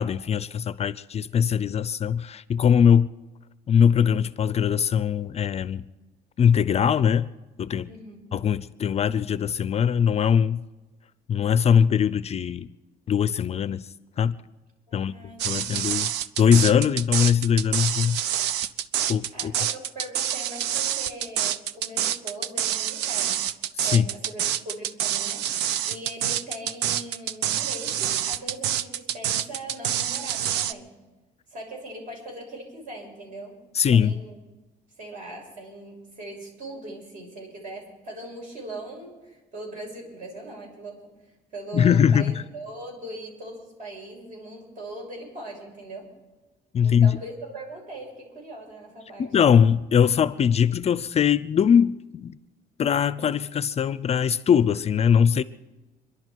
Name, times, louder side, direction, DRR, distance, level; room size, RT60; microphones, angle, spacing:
voice 1, 0.0-3.1 3.7-5.9 6.4-7.3 7.6-7.9 8.3-10.6 11.3-12.7 13.1-13.9 14.2-14.4 14.9-15.1 15.4-16.1 16.4-18.2 19.1-19.5 23.8-24.1 33.7-34.1 41.7-42.3 46.7-47.2 49.2-52.3 52.8-55.4, left 8 dB, 40° left, 0.5 m, -21 dB
voice 2, 14.9-16.0 19.3-23.4 23.8-30.9 31.5-33.6 33.9-34.4 35.0-46.1 46.8-49.4, right 1 dB, 50° right, 6.7 m, -40 dB
sound 1, 15.4-30.7, right 10 dB, 90° right, 0.6 m, -27 dB
27.0 x 11.5 x 4.6 m
cardioid pair, 110°, 17 cm